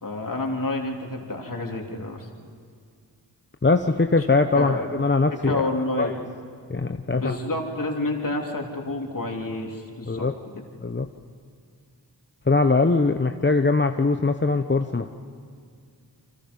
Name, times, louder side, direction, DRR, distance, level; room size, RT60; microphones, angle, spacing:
voice 1, 0.0-2.3 4.5-4.8 5.4-6.1 7.1-10.3, left 2 dB, 50° left, 1 dB, 3.6 m, -29 dB
voice 2, 3.6-5.7 6.0-6.1 6.7-7.4 10.0-10.3 10.8-11.1 12.5-15.1, left 3 dB, 25° left, 6 dB, 1.0 m, -21 dB
28.5 x 25.0 x 5.6 m, 2.1 s
cardioid pair, 45°, 42 cm